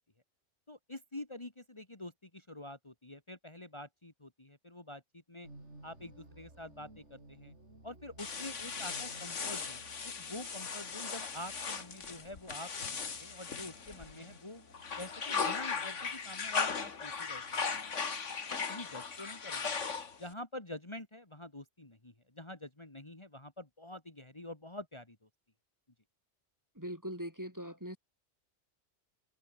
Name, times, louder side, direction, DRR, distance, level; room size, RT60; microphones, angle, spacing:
voice 1, 0.7-5.0 5.3-5.5 5.8-7.5 7.8-14.6 15.0-17.9 18.7-19.7 20.2-25.2, left 1 dB, 25° left, 2.4 m, -47 dB
sound 1, 5.4-18.2, right 2 dB, 70° right, 5.6 m, -59 dB
sound 2, 8.2-14.4 14.7-20.3, left 5 dB, 85° left, 2.1 m, -38 dB
voice 2, 26.7-28.0, equal, 15° right, 4.9 m, -41 dB
omnidirectional pair, 1.2 m